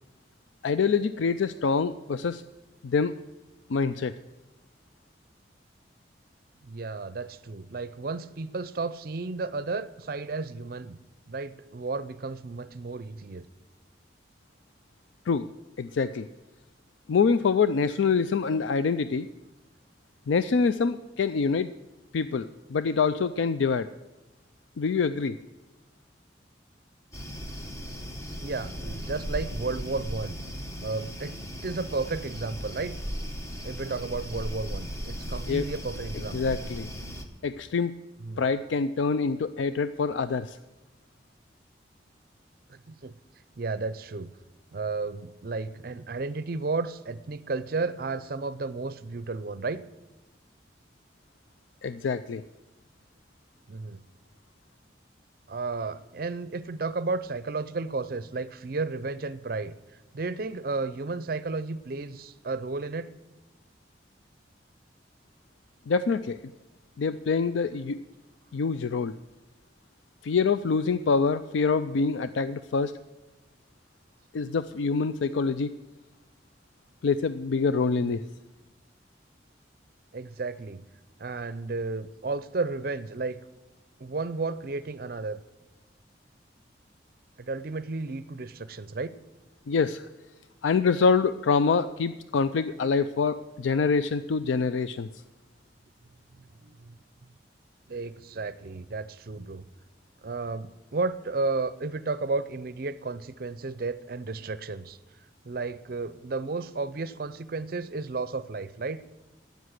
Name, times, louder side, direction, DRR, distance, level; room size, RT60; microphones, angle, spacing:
voice 1, 0.6-2.4 2.8-3.1 3.7-4.1 15.3-15.5 15.8-16.3 17.1-19.3 20.3-21.7 22.1-23.9 24.8-25.4 35.5-35.7 36.3-36.9 37.4-37.9 38.4-40.6 51.8-52.4 65.9-66.4 67.0-68.0 68.5-69.1 70.2-72.9 74.3-75.7 77.0-78.2 89.7-90.1 90.6-95.1, left 5 dB, 90° left, 13 dB, 0.4 m, -25 dB
voice 2, 6.6-11.0 11.3-13.4 28.4-30.4 30.8-33.0 33.6-36.6 38.2-38.4 42.7-43.1 43.6-44.3 44.7-49.8 53.7-54.0 55.5-59.7 60.1-63.1 78.0-78.1 80.1-80.8 81.2-83.4 84.0-85.4 87.4-89.1 96.6-97.0 97.9-99.6 100.2-105.0 105.4-109.0, right 3 dB, 50° right, 15 dB, 0.5 m, -33 dB
sound 1, 27.1-37.2, equal, 15° left, 1.2 m, -37 dB
12.5 x 9.2 x 8.1 m, 1.1 s
head